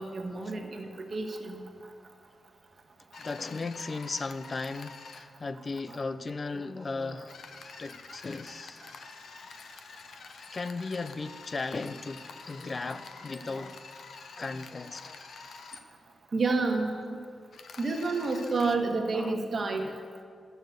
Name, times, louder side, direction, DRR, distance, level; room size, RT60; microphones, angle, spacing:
voice 1, 0.0-1.6 16.3-17.2 17.8-19.9, right 3 dB, 40° right, 1.4 m, -29 dB
sound 1, 3.1-5.3 7.2-15.8 17.5-18.8, left 4 dB, 65° left, 0.8 m, -47 dB
voice 2, 3.2-7.5 7.8-8.8 9.2-9.4 10.4-15.2 18.8-19.9, left 3 dB, 35° left, 0.4 m, -37 dB
12.0 x 6.7 x 7.9 m
wide cardioid pair, 130°, 0 cm